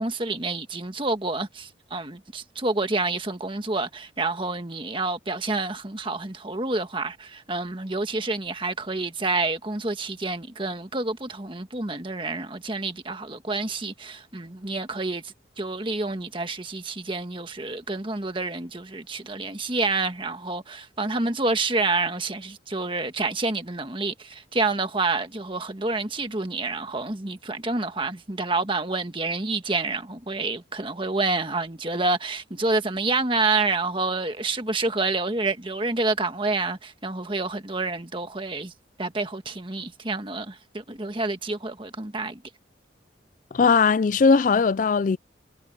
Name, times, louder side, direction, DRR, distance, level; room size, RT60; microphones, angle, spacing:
voice 1, 0.0-38.7 39.0-42.4, right 3 dB, 25° right, 1.5 m, -28 dB
voice 2, 43.5-45.2, left 5 dB, 45° left, 0.4 m, -19 dB
head